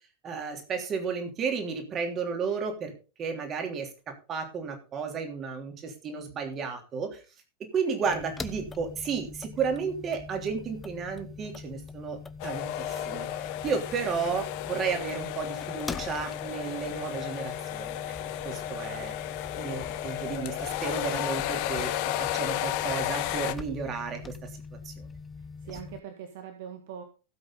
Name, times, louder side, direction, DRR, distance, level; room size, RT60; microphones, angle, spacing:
voice 1, 0.2-2.9 3.2-3.9 4.3-7.2 7.7-18.0 18.4-19.1 19.6-21.9 22.2-24.5 24.8-25.1, right 5 dB, 30° right, 4 dB, 3.2 m, -33 dB
sound 1, 8.1-26.0, left 4 dB, 15° left, 0.9 m, -43 dB
sound 2, 12.4-23.5, left 12 dB, 45° left, 0.9 m, -33 dB
voice 2, 16.6-17.0 25.6-27.0, right 8 dB, 50° right, 5 dB, 1.7 m, -42 dB
15.5 x 8.0 x 3.9 m, 0.33 s
figure-of-eight pair, 90°, 0 cm